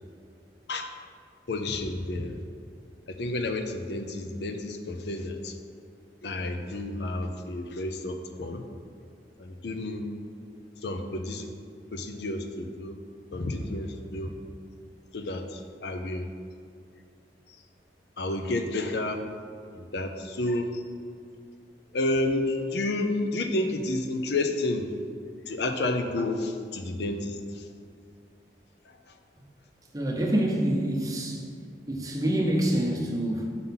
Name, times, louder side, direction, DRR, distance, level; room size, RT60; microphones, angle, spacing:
voice 1, 1.5-2.4 3.1-5.6 6.2-8.6 9.4-10.0 10.8-11.5 11.9-13.0 13.3-14.3 15.1-16.3 18.2-19.2 19.7-20.8 21.9-24.9 25.5-27.7 28.9-29.2, left 2 dB, 65° left, 6 dB, 0.5 m, -30 dB
voice 2, 29.9-31.4 31.9-33.5, right 1 dB, 20° right, 0 dB, 0.7 m, -26 dB
5.6 x 3.8 x 5.7 m, 2.3 s
head